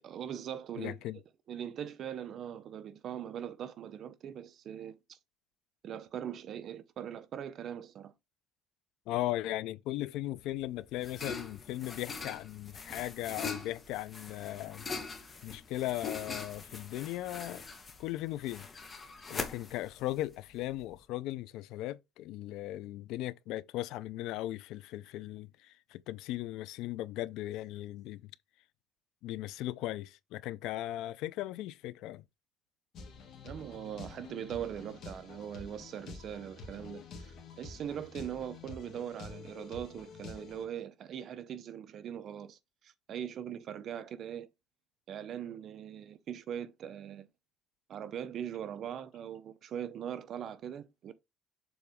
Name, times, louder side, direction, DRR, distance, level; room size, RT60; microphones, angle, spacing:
voice 1, 0.0-1.2 1.5-5.2 5.8-8.1 33.4-42.6 42.8-44.5 45.1-47.3 47.9-51.1, right 9 dB, 45° right, 0.6 m, -41 dB
voice 2, 0.8-1.2 9.1-14.8 15.4-17.6 18.0-18.7 19.3-28.3 29.2-32.2, left 15 dB, 75° left, 0.4 m, -37 dB
sound 1, 10.4-21.0, left 4 dB, 25° left, 1.0 m, -43 dB
sound 2, 32.9-40.6, left 4 dB, 50° left, 2.1 m, -48 dB
7.0 x 3.9 x 3.5 m
cardioid pair, 155°, 0 cm